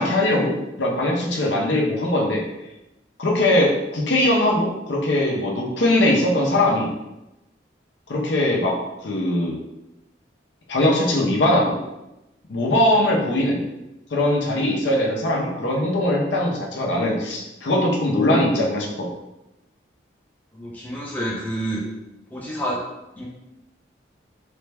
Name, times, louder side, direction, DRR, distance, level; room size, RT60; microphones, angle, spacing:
voice 1, 0.0-2.4 3.2-6.9 8.1-8.8 9.0-9.5 10.7-11.8 12.5-13.6 14.1-19.1, left 1 dB, 80° left, -1 dB, 0.6 m, -21 dB
voice 2, 20.5-21.8 22.3-22.8 23.1-23.3, right 1 dB, 10° left, -5 dB, 0.6 m, -28 dB
3.3 x 2.1 x 3.3 m, 0.94 s
head